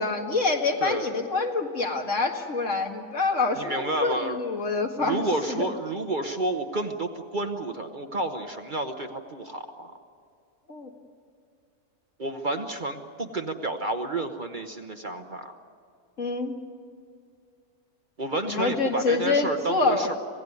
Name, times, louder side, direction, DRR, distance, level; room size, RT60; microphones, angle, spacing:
voice 1, 0.0-5.7 10.7-10.9 16.2-16.5 18.5-20.1, left 3 dB, 55° left, 2 dB, 2.3 m, -26 dB
voice 2, 0.8-1.1 3.6-4.4 5.0-9.9 12.2-15.6 18.2-20.1, right 2 dB, 35° right, 5 dB, 1.1 m, -30 dB
26.5 x 17.0 x 9.6 m, 2.3 s
omnidirectional pair, 1.5 m